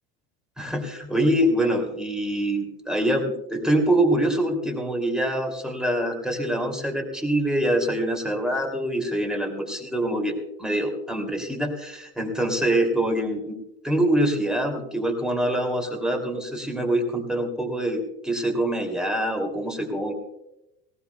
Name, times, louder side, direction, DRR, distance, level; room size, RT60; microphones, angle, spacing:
voice 1, 0.6-13.6 13.8-20.1, right 1 dB, ahead, 3 dB, 2.8 m, -25 dB
18.5 x 18.5 x 2.3 m, 0.89 s
supercardioid pair, 135°, 34 cm